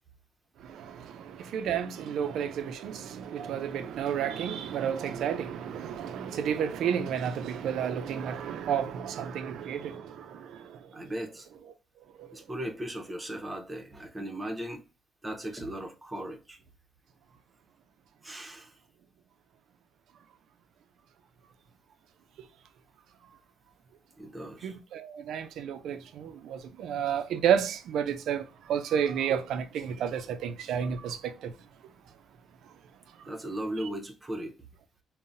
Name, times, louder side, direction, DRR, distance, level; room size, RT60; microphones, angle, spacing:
voice 1, 0.7-10.6 24.6-31.5, right 8 dB, 80° right, 0.4 m, -31 dB
voice 2, 10.9-11.5 12.3-14.8 15.2-16.6 18.2-18.7 24.2-24.8 33.2-34.5, right 1 dB, 15° right, 0.7 m, -37 dB
3.8 x 2.1 x 2.5 m
cardioid pair, 90°, 0 cm